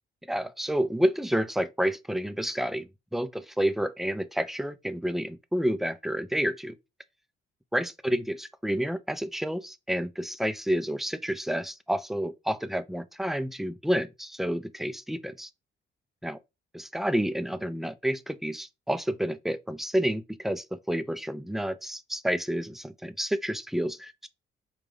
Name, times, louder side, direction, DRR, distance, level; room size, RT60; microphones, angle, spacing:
voice 1, 0.3-6.8 7.7-15.5 16.2-16.4 16.9-24.3, equal, ahead, 0.4 m, -29 dB
4.9 x 2.3 x 3.7 m
cardioid pair, 90°, 20 cm